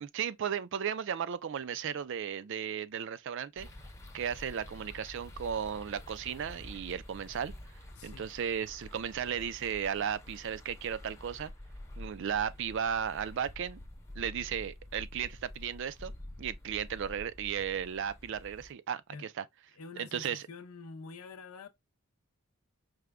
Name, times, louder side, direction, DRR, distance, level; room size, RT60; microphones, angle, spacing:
voice 1, 0.0-3.7 4.1-7.5 8.0-11.5 12.0-13.8 14.2-16.1 16.4-19.4 20.0-20.4, right 8 dB, 55° right, 0.3 m, -35 dB
sound 1, 3.6-18.7, left 1 dB, 15° left, 0.7 m, -48 dB
voice 2, 8.0-8.3 18.3-18.4 19.1-19.3 19.7-21.7, left 4 dB, 80° left, 0.7 m, -47 dB
4.9 x 2.2 x 3.4 m
head